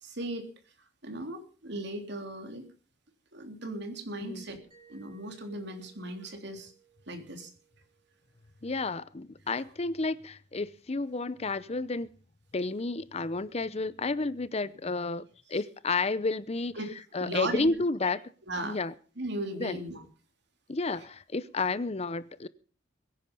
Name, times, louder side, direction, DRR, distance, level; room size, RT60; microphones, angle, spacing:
voice 1, 0.0-0.5 1.0-2.6 3.3-4.6 4.9-6.7 7.1-7.5 15.5-15.6 16.8-16.9 17.2-17.7 18.0-18.1 18.4-18.8 19.2-20.0, right 1 dB, 60° right, 3.5 m, -37 dB
Mallet percussion, 4.7-9.3, right 8 dB, 25° right, 5.6 m, -63 dB
voice 2, 8.6-12.1 12.5-15.2 15.5-16.7 17.1-18.2 18.6-18.9 19.6-19.8 20.7-22.5, left 3 dB, 35° left, 0.7 m, -31 dB
22.0 x 10.0 x 5.5 m
head